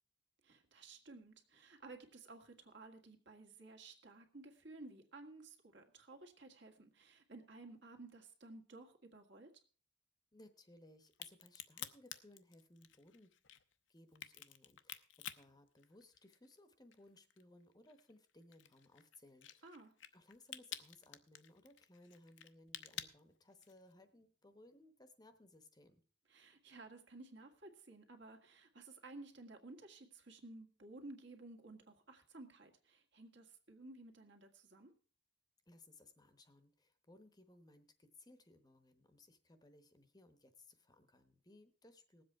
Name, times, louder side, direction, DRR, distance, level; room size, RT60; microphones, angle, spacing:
voice 1, 0.4-9.5 19.6-19.9 26.3-34.9, right 2 dB, 65° right, 3 dB, 1.8 m, -55 dB
voice 2, 10.3-13.3 13.9-19.8 20.1-26.0 35.7-42.2, left 2 dB, 20° left, 10 dB, 0.9 m, -63 dB
Crack, 11.1-16.6 16.9-23.9, left 11 dB, 75° left, 0.8 m, -51 dB
19.0 x 7.7 x 4.6 m, 0.42 s
head